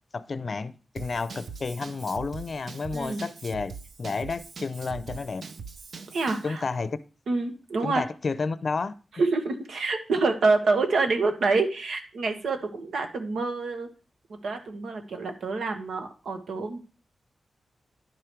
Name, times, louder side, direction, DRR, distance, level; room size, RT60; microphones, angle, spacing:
voice 1, 0.1-3.7 4.0-5.4 6.4-7.0 7.8-8.9, left 4 dB, 50° left, 15 dB, 0.6 m, -31 dB
Drum kit / Drum, 1.0-6.5, right 5 dB, 65° right, 0.7 m, -42 dB
voice 2, 6.1-6.6 7.3-8.0 9.2-13.9 14.4-16.8, right 3 dB, 85° right, 6 dB, 1.4 m, -27 dB
11.0 x 5.0 x 4.6 m, 0.36 s
wide cardioid pair, 105°, 0 cm